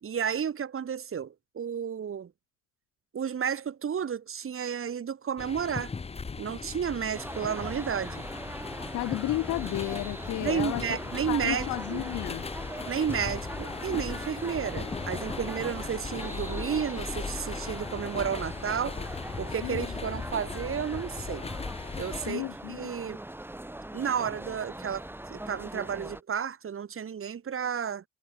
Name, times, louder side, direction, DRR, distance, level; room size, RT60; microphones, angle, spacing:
voice 1, 0.0-2.3 3.1-5.9 6.4-8.2 10.4-12.0 12.9-19.0 19.4-21.5 22.0-23.2 23.9-28.0, right 7 dB, 45° right, 2.2 m, -32 dB
sound 1, 5.4-22.3, left 4 dB, 20° left, 0.7 m, -38 dB
sound 2, 7.1-26.2, right 1 dB, 5° right, 2.1 m, -41 dB
sound 3, 7.1-19.4, right 14 dB, 85° right, 6.1 m, -55 dB
voice 2, 8.9-10.8 11.3-12.5 19.6-19.9 22.3-22.9, left 17 dB, 75° left, 0.7 m, -32 dB
cardioid pair, 90°, 30 cm